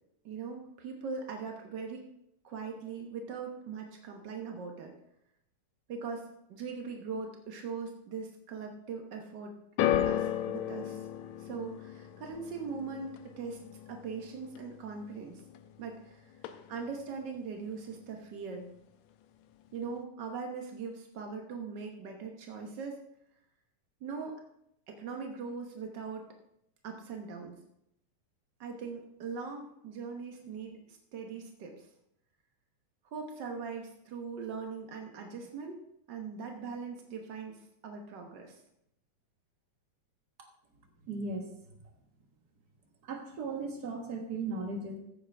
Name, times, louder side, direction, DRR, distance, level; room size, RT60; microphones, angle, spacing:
voice 1, 0.2-2.0 2.4-4.9 5.9-9.6 10.1-11.1 11.4-13.6 13.9-15.4 15.8-16.3 16.7-18.7 19.7-23.0 24.0-24.4 24.9-26.2 26.8-27.6 28.6-31.9 33.1-35.8 36.1-38.6, right 5 dB, 80° right, 2 dB, 0.9 m, -40 dB
sound 1, 9.8-16.1 16.3-17.0 17.7-17.8, left 11 dB, 75° left, 1.9 m, -35 dB
voice 2, 41.1-41.5 43.1-45.0, right 3 dB, 45° right, 2 dB, 1.4 m, -36 dB
15.0 x 8.6 x 3.4 m, 0.78 s
omnidirectional pair, 3.6 m